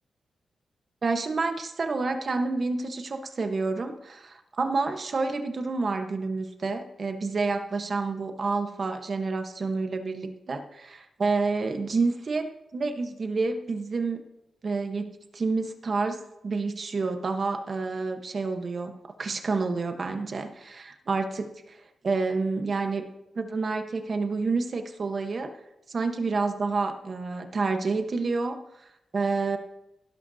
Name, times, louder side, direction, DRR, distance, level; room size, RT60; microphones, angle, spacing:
voice 1, 1.0-14.2 14.6-18.9 19.2-21.8 22.0-23.0 23.3-25.5 25.9-28.6 29.1-29.6, right 3 dB, 40° right, 6 dB, 1.1 m, -29 dB
16.0 x 11.5 x 2.8 m, 0.88 s
wide cardioid pair, 150°, 0 cm